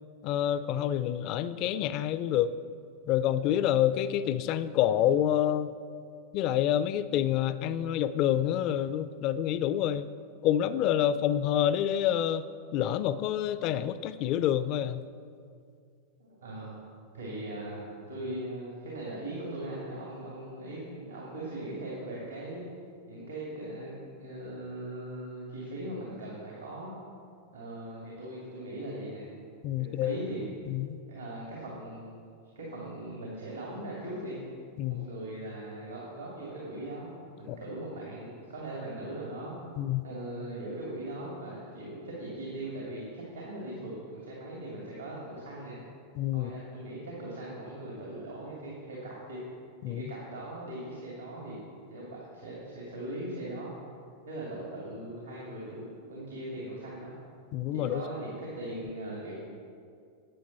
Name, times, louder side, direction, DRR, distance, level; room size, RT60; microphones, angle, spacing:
voice 1, 0.2-2.6 3.1-5.7 6.3-10.1 10.4-12.4 12.7-15.0 29.6-30.2 30.7-31.0 34.8-35.1 37.5-37.6 39.8-40.1 46.2-46.5 49.8-50.0 57.5-58.0, left 11 dB, 40° left, 14 dB, 0.4 m, -27 dB
voice 2, 16.2-16.8 17.1-22.6 23.1-26.9 27.5-29.2 29.8-30.5 31.1-32.2 32.5-34.4 34.9-39.6 40.0-45.8 46.3-49.4 49.8-51.6 51.9-53.7 54.3-55.8 56.1-57.1 57.7-59.3, right 1 dB, 75° right, -5 dB, 2.5 m, -39 dB
13.5 x 8.6 x 4.2 m, 2.3 s
figure-of-eight pair, 90°, 0 cm